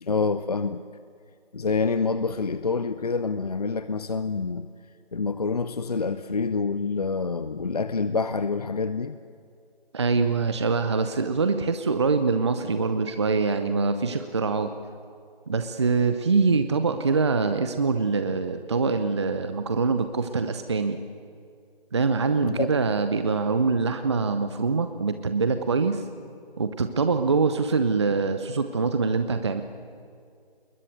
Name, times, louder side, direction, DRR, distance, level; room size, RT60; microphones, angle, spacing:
voice 1, 0.0-0.8 1.5-4.7 5.1-9.2 22.4-22.7, left 4 dB, 40° left, 13 dB, 0.6 m, -27 dB
voice 2, 9.9-14.7 15.5-21.0 21.9-26.0 26.6-29.6, right 4 dB, 30° right, 9 dB, 0.8 m, -24 dB
26.5 x 21.5 x 9.4 m, 2.3 s
figure-of-eight pair, 160°, 30 cm